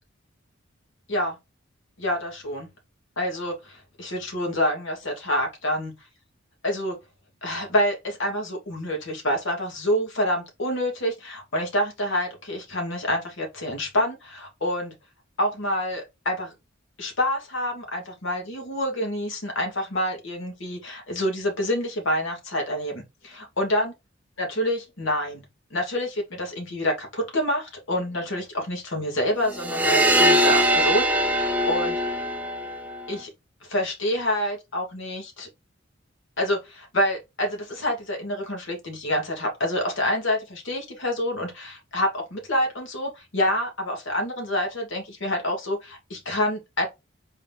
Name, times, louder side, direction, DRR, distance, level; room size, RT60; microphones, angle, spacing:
voice 1, 2.0-2.7 3.2-5.9 6.6-7.0 7.4-14.9 15.4-16.5 17.0-23.9 24.4-25.4 25.7-32.0 33.1-33.3 33.6-35.5 36.4-46.9, left 1 dB, 60° left, 1.4 m, -27 dB
sound 1, 29.5-33.2, equal, 5° right, 0.4 m, -22 dB
4.0 x 2.7 x 3.4 m
head